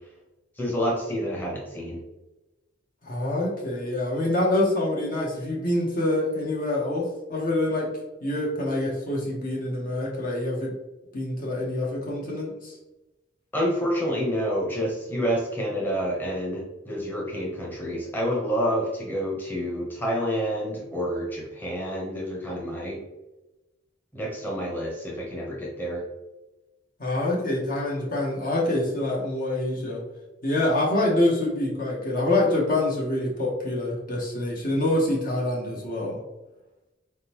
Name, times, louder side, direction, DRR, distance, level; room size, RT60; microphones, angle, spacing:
voice 1, 0.6-2.0 13.5-23.0 24.1-26.0, equal, 10° left, -3 dB, 0.9 m, -28 dB
voice 2, 3.1-7.9 8.2-10.7 11.1-12.7 27.0-30.0 30.4-36.2, left 1 dB, 45° left, -2 dB, 0.9 m, -26 dB
4.1 x 3.6 x 2.9 m, 1.0 s
head